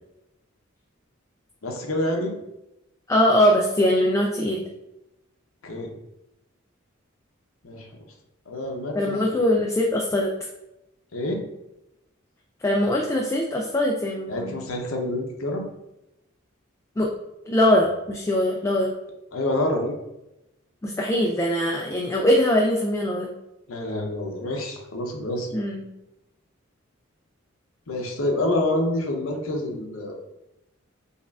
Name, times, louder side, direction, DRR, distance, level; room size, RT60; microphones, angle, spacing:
voice 1, 1.6-2.3 5.6-5.9 7.6-7.9 8.5-9.4 11.1-11.4 14.3-15.7 19.3-19.9 23.7-25.5 27.9-30.2, left 1 dB, 80° left, 2 dB, 0.7 m, -27 dB
voice 2, 3.1-4.6 8.9-10.3 12.6-14.5 17.0-17.1 17.5-18.9 20.8-23.3 25.5-25.8, left 1 dB, 15° left, 0 dB, 0.3 m, -22 dB
5.3 x 2.4 x 2.3 m, 0.90 s
head